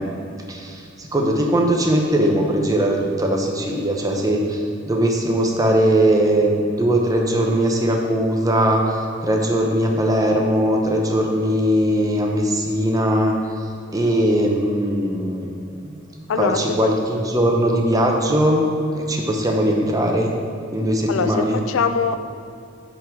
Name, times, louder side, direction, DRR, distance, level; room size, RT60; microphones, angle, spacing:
voice 1, 0.0-13.3 13.9-18.6 18.9-20.3 20.7-21.6, right 1 dB, 15° right, 1 dB, 0.8 m, -20 dB
voice 2, 16.3-16.9 17.7-17.8 21.1-22.2, left 5 dB, 75° left, 10 dB, 0.4 m, -23 dB
10.5 x 3.9 x 4.6 m, 2.5 s
head